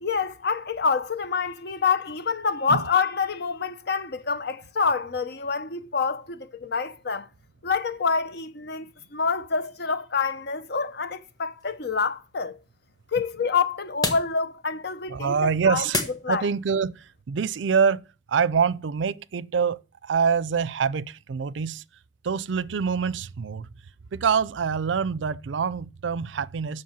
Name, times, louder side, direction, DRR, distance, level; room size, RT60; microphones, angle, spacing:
voice 1, 0.0-7.3 7.6-12.6 13.1-15.3 15.7-16.5, left 5 dB, 60° left, 0.8 m, -27 dB
sound 1, 10.7-16.8, left 2 dB, 20° left, 1.4 m, -36 dB
voice 2, 15.1-16.0 16.3-21.8 22.2-23.7 24.1-26.8, right 6 dB, 80° right, 0.5 m, -25 dB
7.6 x 6.1 x 7.3 m
head